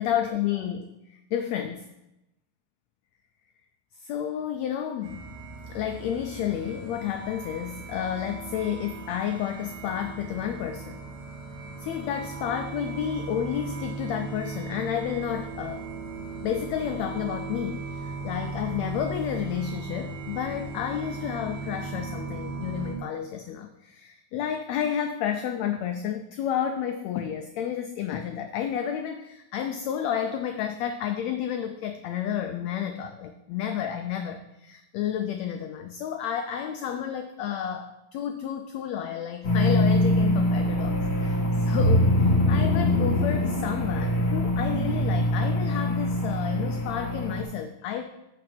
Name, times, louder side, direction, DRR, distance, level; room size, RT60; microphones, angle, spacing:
voice 1, 0.0-1.8 4.0-5.2 5.7-11.0 11.8-15.9 16.4-48.0, left 9 dB, 90° left, 7 dB, 1.5 m, -31 dB
sound 1, 5.0-23.0, right 4 dB, 70° right, 3.0 m, -37 dB
sound 2, 39.4-47.4, left 1 dB, 45° left, 2.0 m, -23 dB
8.2 x 5.8 x 5.9 m, 0.91 s
omnidirectional pair, 3.8 m